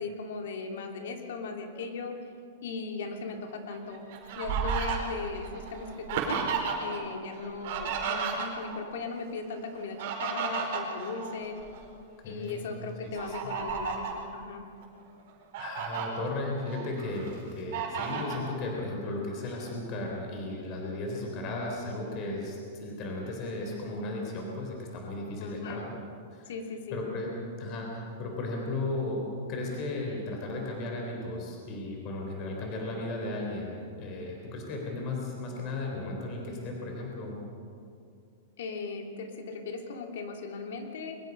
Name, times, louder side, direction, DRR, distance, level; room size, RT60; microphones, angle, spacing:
voice 1, 0.0-2.3 2.6-4.0 4.3-6.4 6.8-11.6 12.2-14.6 25.4-25.8 26.5-27.0 38.6-41.2, left 4 dB, 70° left, 3 dB, 3.0 m, -38 dB
Fowl, 3.7-7.0 7.3-8.8 9.7-11.8 12.3-12.5 13.1-14.2 14.8-14.9 15.3-16.1 16.6-17.3 17.7-18.4, right 6 dB, 45° right, 4.8 m, -33 dB
voice 2, 12.2-12.7 13.0-13.5 15.6-25.9 26.3-26.5 26.9-27.3 27.6-37.4, left 2 dB, 30° left, 0 dB, 4.1 m, -35 dB
24.0 x 21.5 x 5.5 m, 2.4 s
supercardioid pair, 170°, 0 cm